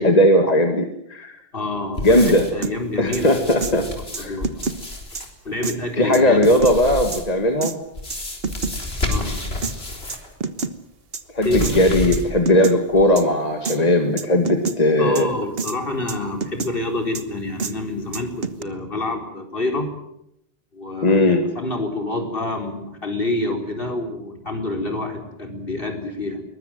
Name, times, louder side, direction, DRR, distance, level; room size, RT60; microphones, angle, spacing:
voice 1, 0.0-1.3 2.0-2.5 3.0-4.4 6.0-7.7 11.3-15.3 21.0-21.5, left 1 dB, 40° left, 5 dB, 2.1 m, -18 dB
voice 2, 1.5-3.3 4.2-4.7 5.4-6.5 9.1-9.4 11.4-11.8 15.0-19.9 20.7-26.4, left 2 dB, 60° left, 4 dB, 4.5 m, -27 dB
sound 1, 2.0-2.6 3.1-5.3 6.4-7.4 7.9-10.3 10.6-10.7 11.4-12.5 12.9-13.0, left 2 dB, 75° left, 4.4 m, -30 dB
sound 2, 2.6-2.7 3.1-3.2 3.6-3.7 4.1-4.8 5.2-5.3 5.6-5.8 6.1-6.7 7.1-7.2 7.6-7.7 8.1-8.8 9.1-9.2 9.6-9.7 10.1-10.7 11.1-11.2 11.6-11.7 12.1-12.2 12.5-12.8 13.2-13.3 13.7-13.8 14.2-14.8 15.2-15.3 15.6-15.8 16.1-16.7 17.1-17.2 17.6-17.7 18.1-18.6, right 4 dB, 65° right, 1.6 m, -27 dB
22.0 x 20.0 x 9.1 m, 0.78 s
omnidirectional pair, 1.0 m